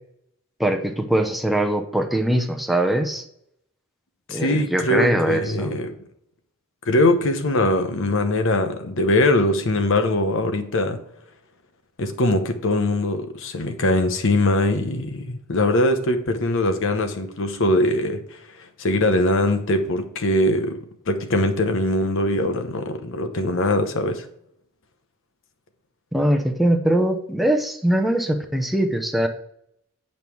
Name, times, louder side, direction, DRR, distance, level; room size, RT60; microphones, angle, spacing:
voice 1, 0.6-3.2 4.3-5.7 26.1-29.3, right 1 dB, ahead, 0.7 m, -22 dB
voice 2, 4.3-6.0 6.8-11.0 12.0-24.3, left 1 dB, 65° left, 0.9 m, -22 dB
8.9 x 5.4 x 4.6 m
head